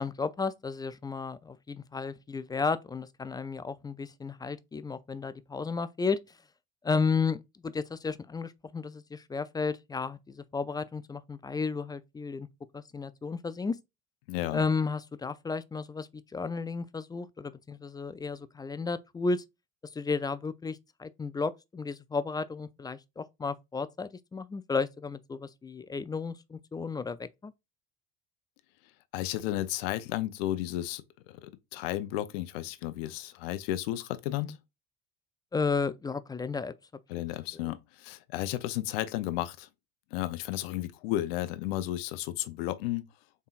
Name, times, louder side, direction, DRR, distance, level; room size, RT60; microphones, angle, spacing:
voice 1, 0.0-6.2 6.8-12.5 12.7-13.8 14.5-19.4 19.8-27.5 34.3-34.6 35.5-36.7 37.5-37.7, left 4 dB, 15° left, 0.3 m, -33 dB
voice 2, 14.3-14.6 29.1-34.6 37.1-39.7 40.1-43.0, left 14 dB, 80° left, 0.6 m, -33 dB
4.1 x 3.6 x 2.4 m
supercardioid pair, 80°, 29 cm